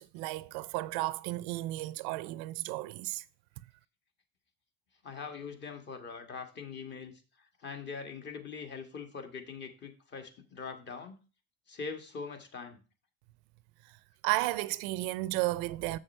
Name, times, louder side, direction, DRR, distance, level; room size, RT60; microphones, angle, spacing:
voice 1, 0.0-3.2 14.2-16.0, right 18 dB, 75° right, 0.5 m, -33 dB
voice 2, 5.0-11.2 11.7-12.8, left 5 dB, 35° left, 1.8 m, -42 dB
7.3 x 6.4 x 4.3 m
cardioid pair, 120°, 30 cm